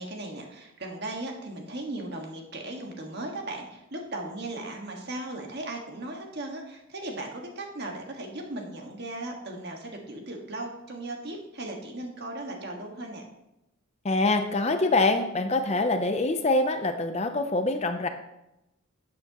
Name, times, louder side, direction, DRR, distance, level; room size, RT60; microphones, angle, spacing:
voice 1, 0.0-13.2, right 2 dB, 50° right, 1 dB, 1.7 m, -37 dB
voice 2, 14.0-18.1, left 2 dB, 30° left, 7 dB, 0.6 m, -25 dB
12.0 x 8.6 x 3.0 m, 0.89 s
head